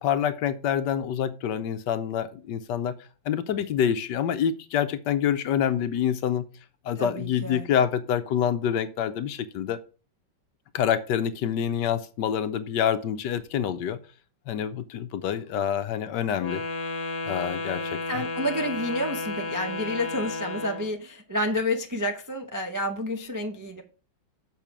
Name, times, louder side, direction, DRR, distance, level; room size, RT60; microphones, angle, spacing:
voice 1, 0.0-2.9 3.3-6.4 6.8-9.8 10.7-14.0 14.5-16.6 17.3-18.0, left 9 dB, 70° left, 1.2 m, -26 dB
voice 2, 7.0-7.6 18.1-23.8, left 1 dB, 30° right, 0.3 m, -30 dB
Wind instrument woodwind instrument, 16.3-21.0, left 3 dB, 55° left, 1.4 m, -32 dB
7.0 x 5.8 x 6.0 m
omnidirectional pair, 2.1 m